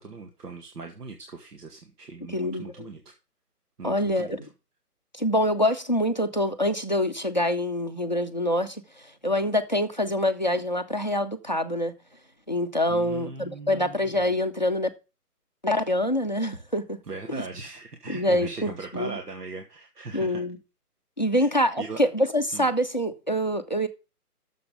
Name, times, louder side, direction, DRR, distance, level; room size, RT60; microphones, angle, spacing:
voice 1, 0.0-3.0 3.8-4.4 12.9-14.3 17.1-20.4 21.3-21.5 21.8-22.0 22.5-22.7, right 4 dB, 80° right, 1.9 m, -39 dB
voice 2, 2.3-2.9 3.8-4.5 5.1-8.8 9.2-11.9 12.5-14.9 15.6-17.0 17.3-17.4 18.1-19.2 20.1-20.6 21.2-23.9, left 1 dB, 30° left, 0.5 m, -25 dB
7.1 x 6.9 x 6.6 m
hypercardioid pair, 170°, 47 cm